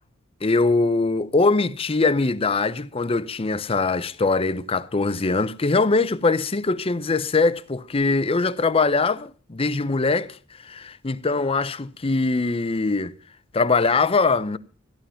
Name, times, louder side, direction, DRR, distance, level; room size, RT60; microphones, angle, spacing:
voice 1, 0.4-10.4 10.6-13.1 13.5-14.6, left 3 dB, 30° left, 0.6 m, -22 dB
13.0 x 11.5 x 5.6 m
head